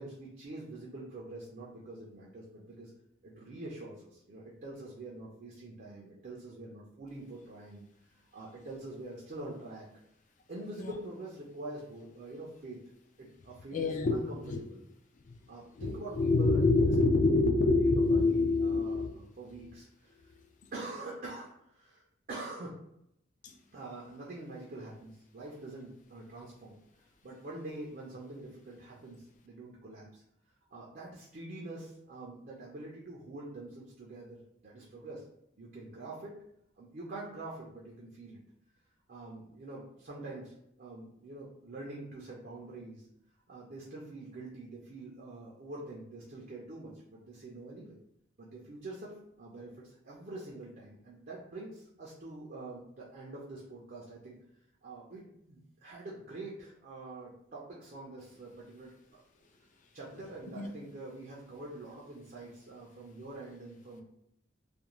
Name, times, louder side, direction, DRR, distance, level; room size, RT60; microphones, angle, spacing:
voice 1, 0.0-2.9 3.2-7.9 8.3-9.9 10.5-12.8 13.2-14.8 15.5-16.8 17.6-20.3 20.7-22.0 22.3-22.8 23.7-26.7 27.2-30.2 30.7-35.2 35.6-36.3 36.8-38.4 39.1-43.1 43.5-47.9 48.4-54.4 54.8-59.2 59.9-64.0, right 2 dB, 50° right, -4 dB, 0.4 m, -45 dB
voice 2, 13.7-14.2 14.4-14.6 15.3-15.4 15.8-19.1 23.4-23.5 60.6-60.7, left 3 dB, 40° left, 3 dB, 0.3 m, -26 dB
2.4 x 2.1 x 2.9 m, 0.78 s
head